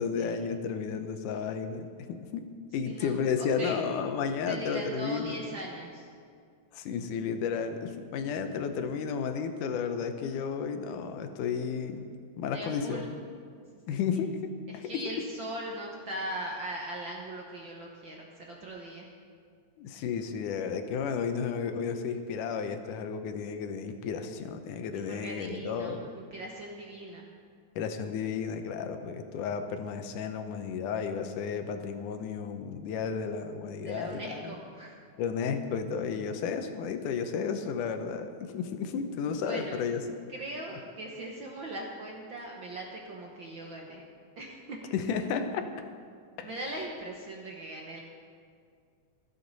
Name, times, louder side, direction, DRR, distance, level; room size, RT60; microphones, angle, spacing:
voice 1, 0.0-2.5 2.7-5.4 6.7-12.0 12.4-13.1 13.9-15.0 19.8-26.1 27.8-34.5 35.2-40.0 44.9-45.7 46.4-46.5, left 6 dB, 90° left, 7 dB, 2.4 m, -33 dB
voice 2, 2.8-3.7 4.5-6.1 12.5-13.1 14.1-14.2 14.7-19.1 24.9-27.2 33.8-35.0 39.4-39.8 40.3-44.0 44.4-44.8 46.4-48.0, right 1 dB, 60° right, -1 dB, 1.3 m, -40 dB
25.5 x 8.5 x 4.1 m, 2.2 s
omnidirectional pair, 3.5 m